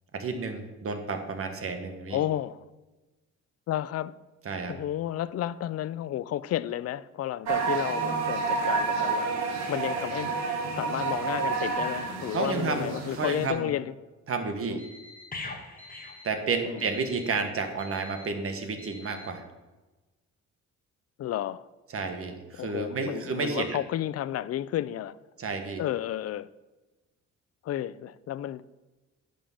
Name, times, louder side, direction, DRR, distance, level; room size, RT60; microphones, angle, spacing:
voice 1, 0.1-2.2 4.4-4.7 12.3-13.7 14.3-14.8 16.2-19.4 21.9-23.8 25.4-25.8, right 4 dB, 45° right, 1.4 m, -31 dB
voice 2, 2.1-2.7 3.7-4.1 4.6-9.3 9.7-13.9 14.7-14.8 16.6-16.8 21.2-21.7 22.6-25.2 25.8-26.5 27.6-28.7, left 12 dB, 55° left, 0.4 m, -32 dB
sound 1, 7.5-13.5, right 5 dB, 65° right, 1.7 m, -29 dB
Alarm, 14.8-15.2 15.8-16.2 16.8-17.2 17.8-18.2 18.8-19.2, left 1 dB, 30° right, 3.3 m, -49 dB
sound 2, 15.3-17.2 17.5-17.7, left 3 dB, 30° left, 1.2 m, -42 dB
10.0 x 3.7 x 7.1 m
cardioid pair, 90°, 30 cm